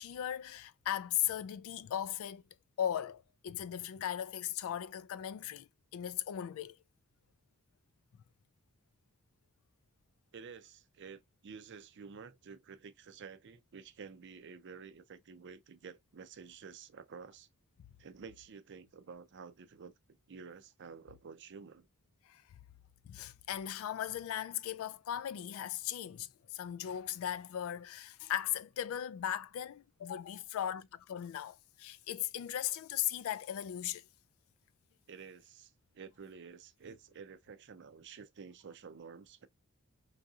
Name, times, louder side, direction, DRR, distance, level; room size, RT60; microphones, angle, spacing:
voice 1, 0.0-2.4 2.8-6.8 22.3-22.4 23.1-34.0, left 10 dB, 65° left, 0.3 m, -38 dB
voice 2, 10.3-17.5 18.0-19.9 20.3-21.9 35.1-39.5, right 5 dB, 55° right, 0.5 m, -51 dB
3.9 x 2.7 x 2.3 m
head